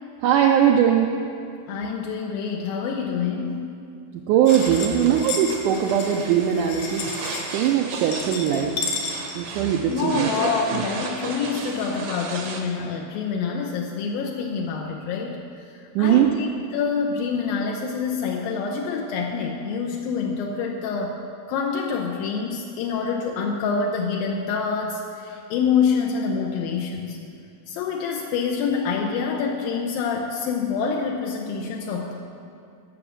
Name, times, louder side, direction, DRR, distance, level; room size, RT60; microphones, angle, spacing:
voice 1, 0.2-1.1 4.3-7.1 7.5-8.7 9.3-10.3 10.7-10.8 16.0-16.3, right 9 dB, 85° right, 2 dB, 1.8 m, -20 dB
voice 2, 1.7-3.7 9.9-15.4 16.0-16.5 16.7-21.2 21.5-27.2 27.7-32.1, left 5 dB, 80° left, 0 dB, 2.4 m, -26 dB
sound 1, 4.5-10.0, left 4 dB, 65° left, 2.7 m, -33 dB
sound 2, 4.5-12.6, right 4 dB, 70° right, 1.6 m, -35 dB
12.5 x 6.2 x 7.2 m, 2.4 s
omnidirectional pair, 4.3 m